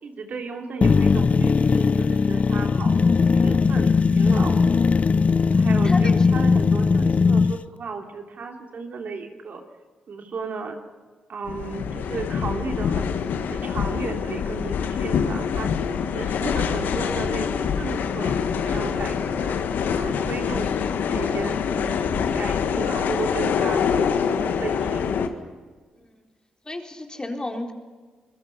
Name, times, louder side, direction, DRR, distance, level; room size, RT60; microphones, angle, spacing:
voice 1, 0.0-3.0 3.3-4.7 5.5-9.6 10.1-10.8 11.3-13.1 13.5-15.7 16.1-18.4 18.6-19.5 19.9-20.8 21.1-25.1, right 4 dB, 55° right, 3 dB, 3.2 m, -34 dB
sound 1, 0.8-7.6, left 4 dB, 40° left, 0.7 m, -19 dB
voice 2, 5.8-6.2 26.0-26.1 26.7-27.7, left 2 dB, 25° left, 3 dB, 4.2 m, -32 dB
sound 2, 11.5-25.3, left 7 dB, 65° left, 1.7 m, -25 dB
26.5 x 21.5 x 5.7 m, 1.4 s
hypercardioid pair, 40°, 3 cm